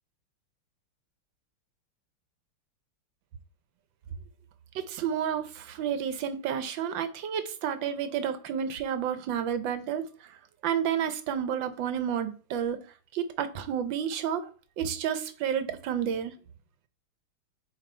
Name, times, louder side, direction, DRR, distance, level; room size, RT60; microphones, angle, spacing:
voice 1, 4.7-10.4 10.6-12.8 13.1-14.5 14.8-16.3, right 8 dB, 70° right, 1.3 m, -30 dB
8.6 x 3.4 x 4.3 m
omnidirectional pair, 2.4 m